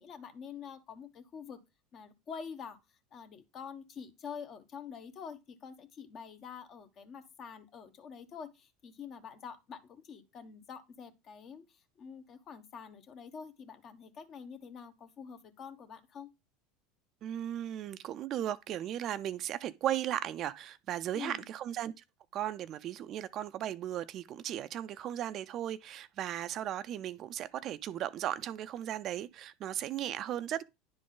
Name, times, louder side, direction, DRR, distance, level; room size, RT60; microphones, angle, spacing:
voice 1, 0.0-1.6 1.9-2.8 3.1-16.3 21.1-21.5, left 6 dB, 45° left, 1.2 m, -46 dB
voice 2, 17.2-22.0 22.3-30.6, right 11 dB, 50° right, 0.4 m, -36 dB
10.0 x 3.8 x 3.8 m
supercardioid pair, 100°, 0 cm